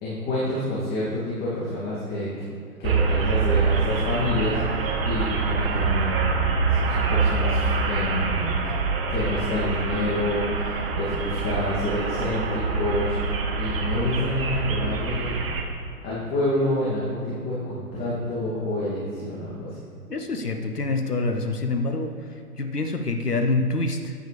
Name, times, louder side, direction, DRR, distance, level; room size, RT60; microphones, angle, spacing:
voice 1, 0.0-2.4 2.8-8.6 9.1-13.2 13.6-15.4 16.0-19.8, left 1 dB, 20° left, -8 dB, 2.6 m, -28 dB
sound 1, 2.8-15.6, right 4 dB, 40° right, 1.3 m, -25 dB
voice 2, 20.1-24.1, left 2 dB, 90° left, 5 dB, 1.2 m, -26 dB
14.5 x 9.0 x 3.4 m, 2.5 s
figure-of-eight pair, 120°, 45 cm